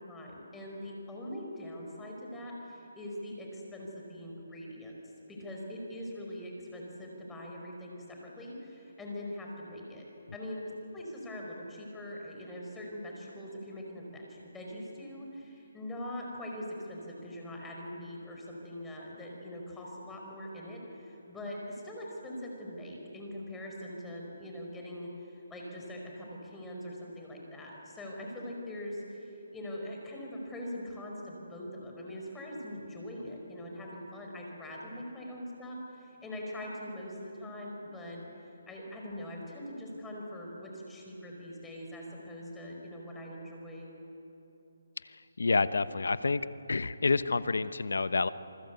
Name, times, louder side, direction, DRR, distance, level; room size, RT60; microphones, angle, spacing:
voice 1, 0.1-5.0 5.3-10.0 10.3-43.9, left 1 dB, 10° left, -1 dB, 5.0 m, -42 dB
voice 2, 45.0-46.4 46.7-48.3, left 4 dB, 80° left, 13 dB, 1.1 m, -28 dB
27.0 x 25.0 x 8.3 m, 2.9 s
hypercardioid pair, 160°, 0 cm